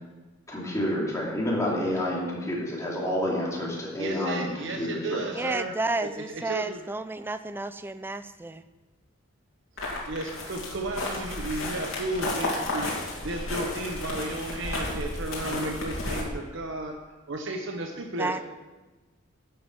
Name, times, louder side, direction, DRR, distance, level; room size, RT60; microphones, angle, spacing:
voice 1, 0.5-4.5 4.8-5.5, left 1 dB, 15° left, -4 dB, 2.7 m, -29 dB
voice 2, 4.0-5.7 6.0-6.8 10.1-17.0 17.3-18.3, right 2 dB, 60° right, 2 dB, 1.0 m, -34 dB
voice 3, 5.4-8.6 18.2-18.4, right 2 dB, 10° right, 12 dB, 0.3 m, -31 dB
sound 1, 9.8-16.2, left 2 dB, 65° left, 2.7 m, -32 dB
11.0 x 7.8 x 6.0 m, 1.2 s
head